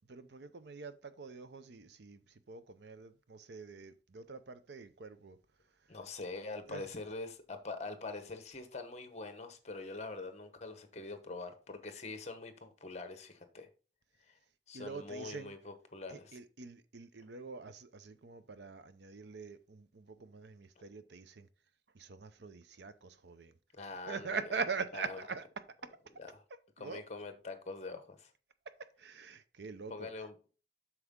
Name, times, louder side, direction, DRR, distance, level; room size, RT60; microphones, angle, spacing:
voice 1, 0.1-5.4 5.8-6.0 6.7-6.9 14.7-15.5 16.1-21.5 21.9-23.6 24.1-26.0 26.8-27.0 28.7-30.1, right 5 dB, 70° right, 0.6 m, -44 dB
voice 2, 5.9-13.7 14.3-14.4 14.7-16.4 23.7-24.4 24.9-25.2 26.2-26.4 26.8-28.3 29.9-30.5, left 3 dB, 40° left, 1.0 m, -44 dB
8.0 x 5.9 x 3.7 m
head